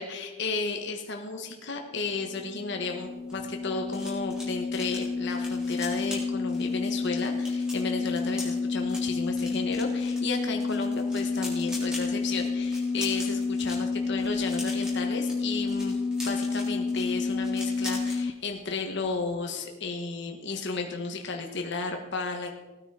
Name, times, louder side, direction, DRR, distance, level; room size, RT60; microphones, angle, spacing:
voice 1, 0.0-22.5, left 3 dB, 50° left, 3 dB, 1.3 m, -33 dB
sound 1, 2.1-18.3, left 4 dB, 20° left, 0.3 m, -30 dB
sound 2, 3.0-18.2 18.5-18.8 19.0-19.3, left 2 dB, 5° right, 3.4 m, -43 dB
17.0 x 9.4 x 4.9 m, 1.2 s
head